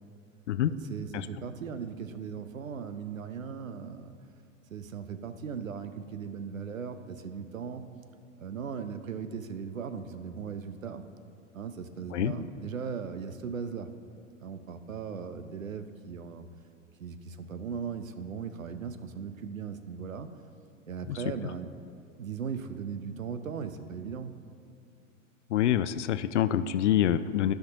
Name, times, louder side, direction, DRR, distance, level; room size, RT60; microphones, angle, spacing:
voice 1, 0.6-4.1 4.7-7.9 8.4-11.0 11.5-13.9 14.4-16.5 17.0-20.3 20.9-21.7 22.2-24.4, right 6 dB, 80° right, 11 dB, 0.7 m, -38 dB
voice 2, 25.5-27.5, left 11 dB, 60° left, 13 dB, 0.5 m, -26 dB
15.5 x 5.9 x 2.8 m, 2.5 s
figure-of-eight pair, 95°, 39 cm